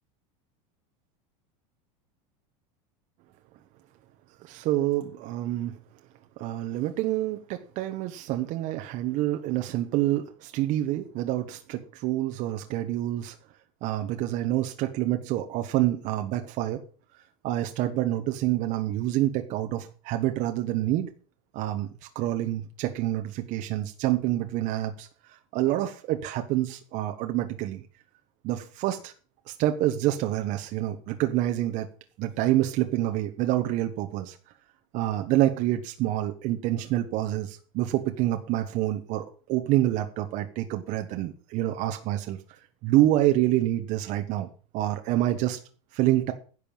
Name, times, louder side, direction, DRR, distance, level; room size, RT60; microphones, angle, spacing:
voice 1, 4.4-5.8 6.4-13.3 13.8-16.8 17.4-21.1 21.5-25.1 25.5-27.8 28.4-29.1 29.5-31.9 32.2-34.4 34.9-44.5 44.7-45.6 45.9-46.3, right 14 dB, 45° right, 6 dB, 1.2 m, -27 dB
10.5 x 6.9 x 7.0 m, 0.38 s
supercardioid pair, 150°, 18 cm